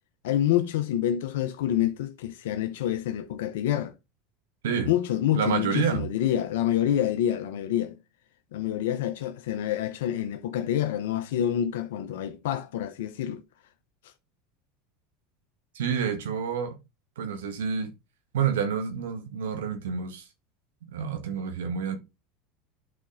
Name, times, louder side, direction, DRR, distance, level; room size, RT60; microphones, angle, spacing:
voice 1, 0.2-3.9 4.9-8.0 8.5-13.4 14.0-14.1, left 11 dB, 75° left, 0.6 m, -27 dB
voice 2, 5.3-6.1 15.7-16.8 17.2-17.9 18.3-20.3 20.9-22.0, right 7 dB, 85° right, 1.6 m, -28 dB
8.5 x 4.3 x 3.8 m
hypercardioid pair, 95°, 0 cm